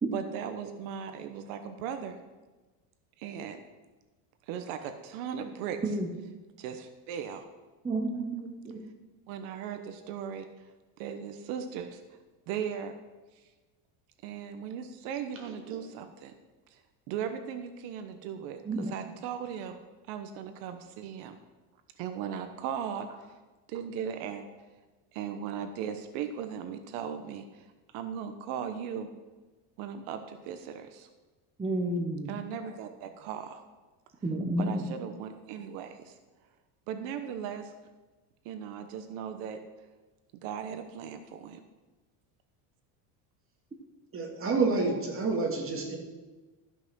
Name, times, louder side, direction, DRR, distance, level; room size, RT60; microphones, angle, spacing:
voice 1, 0.1-2.2 3.2-3.6 4.5-5.8 6.6-7.4 9.3-10.7 11.0-12.2 12.5-12.9 13.3-13.4 14.2-16.3 16.7-16.8 17.1-19.8 20.1-21.4 22.0-23.4 23.7-24.5 25.1-29.1 29.8-31.1 32.3-33.6 34.6-36.1 36.9-37.7 38.4-39.6 40.4-41.6, right 8 dB, 75° right, 8 dB, 1.1 m, -38 dB
voice 2, 7.8-8.8 18.6-18.9 31.6-32.4 34.2-34.9, right 1 dB, 15° right, 1 dB, 1.0 m, -31 dB
voice 3, 44.1-46.0, right 4 dB, 30° right, 0 dB, 2.5 m, -28 dB
13.5 x 6.1 x 6.2 m, 1.2 s
cardioid pair, 145°, 45 cm